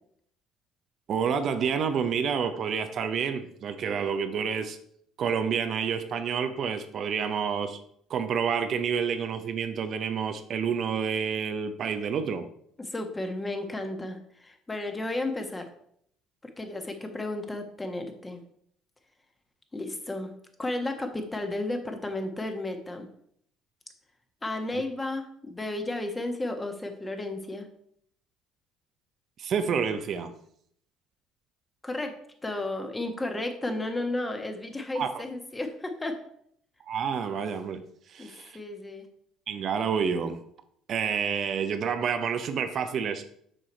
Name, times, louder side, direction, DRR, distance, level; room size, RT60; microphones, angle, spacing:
voice 1, 1.1-4.8 5.2-7.8 8.1-12.5 24.7-24.8 29.4-30.3 34.9-35.2 36.8-37.8 38.1-38.6 39.5-40.4 40.9-43.2, right 6 dB, 55° right, 8 dB, 0.7 m, -29 dB
voice 2, 12.8-15.7 16.6-18.4 19.7-20.3 20.6-23.1 24.4-27.7 31.8-32.1 32.4-36.2 38.2-39.1, left 2 dB, 20° left, 5 dB, 1.4 m, -33 dB
6.5 x 4.7 x 4.4 m, 0.67 s
supercardioid pair, 70°, 0 cm